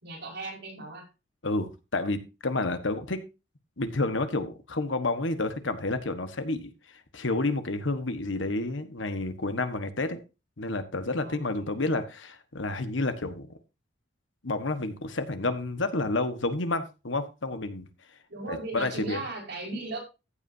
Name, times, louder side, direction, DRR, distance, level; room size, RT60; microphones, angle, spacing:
voice 1, 0.0-1.1 11.2-11.7 18.3-20.0, right 2 dB, 60° right, -1 dB, 5.3 m, -37 dB
voice 2, 1.4-3.2 3.8-6.7 7.1-10.2 10.6-13.5 14.4-17.9 18.5-19.2, left 2 dB, 75° left, 10 dB, 1.4 m, -30 dB
15.0 x 8.5 x 2.7 m, 0.28 s
head